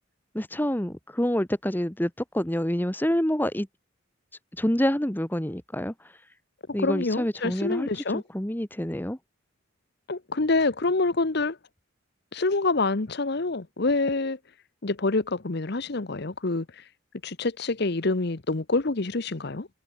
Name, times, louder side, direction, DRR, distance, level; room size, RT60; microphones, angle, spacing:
voice 1, 0.3-3.7 4.5-6.2 6.7-9.2, equal, 10° left, 1.3 m, -27 dB
voice 2, 6.8-8.2 10.1-11.6 12.3-14.4 14.8-16.7 17.2-19.7, left 3 dB, 50° left, 1.0 m, -26 dB
head